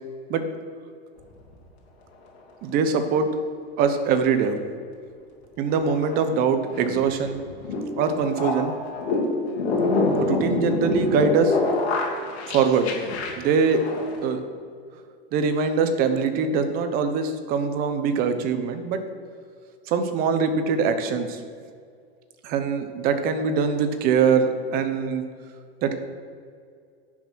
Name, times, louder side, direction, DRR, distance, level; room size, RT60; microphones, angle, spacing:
sound 1, 1.2-1.5 5.4-14.3, left 3 dB, 85° left, 2.6 m, -26 dB
voice 1, 2.6-3.3 3.8-4.6 5.6-7.4 7.9-8.7 10.2-11.6 12.5-13.0 13.4-13.8 14.2-14.4 15.3-19.0 19.9-21.4 22.4-25.2 25.8-26.0, right 5 dB, 30° right, 8 dB, 0.8 m, -23 dB
10.5 x 6.0 x 6.2 m, 2.2 s
supercardioid pair, 165°, 32 cm